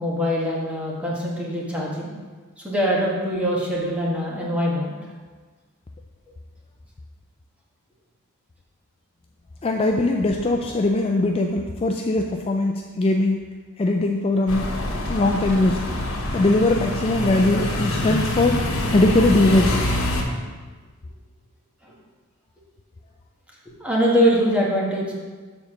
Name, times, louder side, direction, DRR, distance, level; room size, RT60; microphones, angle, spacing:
voice 1, 0.0-2.1 2.6-4.9 21.8-21.9 23.8-25.1, equal, 5° right, -4 dB, 1.4 m, -23 dB
voice 2, 9.6-13.4 13.8-14.8 15.1-15.8 16.3-18.6 18.9-19.9, left 2 dB, 25° left, 2 dB, 0.4 m, -20 dB
sound 1, 14.5-20.2, left 1 dB, 85° left, 1.1 m, -25 dB
7.1 x 4.1 x 6.0 m, 1.4 s
head